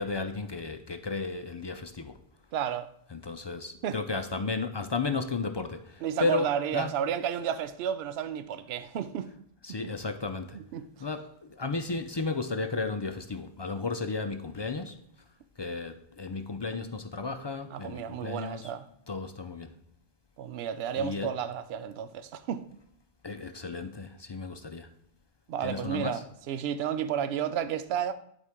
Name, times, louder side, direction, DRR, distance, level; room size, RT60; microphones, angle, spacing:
voice 1, 0.0-2.2 3.1-6.9 9.6-10.6 11.0-15.0 15.6-18.7 19.1-19.7 21.0-21.3 23.2-24.9 25.6-26.2, left 3 dB, 40° left, 0.4 m, -34 dB
voice 2, 2.5-2.9 3.8-4.0 6.0-9.3 9.8-9.9 10.5-10.8 17.7-18.9 20.4-22.6 25.5-28.1, right 9 dB, 80° right, 0.8 m, -32 dB
11.0 x 4.5 x 3.5 m
omnidirectional pair, 1.1 m